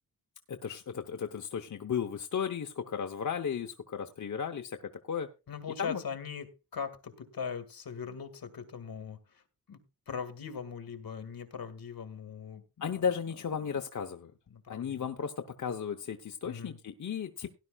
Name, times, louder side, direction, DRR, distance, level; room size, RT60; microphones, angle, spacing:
voice 1, 0.5-4.8 5.0-5.3 5.8-6.0 12.8-14.3 14.7-17.5, left 7 dB, 50° left, 5 dB, 0.9 m, -35 dB
voice 2, 5.5-9.4 9.7-9.8 10.1-13.1 14.5-15.1 16.4-16.8, left 6 dB, 70° left, 9 dB, 1.8 m, -40 dB
17.5 x 11.0 x 2.4 m, 0.29 s
wide cardioid pair, 135°, 37 cm